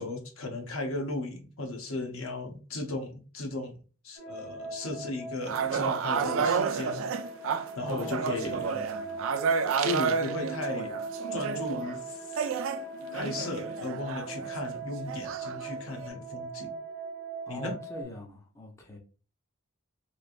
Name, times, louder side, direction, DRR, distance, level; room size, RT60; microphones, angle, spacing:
voice 1, 0.0-3.7 4.0-7.0 7.8-8.6 9.8-11.0 11.3-12.4 13.1-16.7 17.5-17.8, left 2 dB, 70° left, 0.7 m, -36 dB
sound 1, 4.2-18.0, right 3 dB, 50° left, 1.6 m, -39 dB
sound 2, 5.4-12.0 12.4-14.8 15.1-16.1, right 6 dB, 65° right, 0.3 m, -31 dB
voice 2, 7.8-9.3 17.5-19.0, equal, 15° left, 0.4 m, -43 dB
3.1 x 2.5 x 2.4 m
head